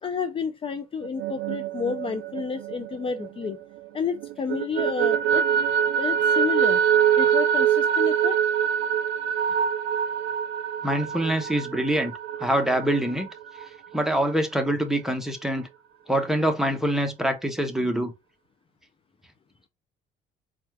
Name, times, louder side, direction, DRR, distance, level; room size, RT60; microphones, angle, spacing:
voice 1, 0.0-3.6 3.9-5.4 6.0-6.8 7.2-8.4, left 6 dB, 30° left, 0.5 m, -30 dB
sound 1, 1.0-3.9 4.2-13.6, right 8 dB, 85° right, 0.5 m, -24 dB
voice 2, 10.8-12.1 12.4-13.3 13.9-15.7 16.1-18.1, right 1 dB, ahead, 0.9 m, -25 dB
4.4 x 2.4 x 3.2 m
cardioid pair, 110°, 17 cm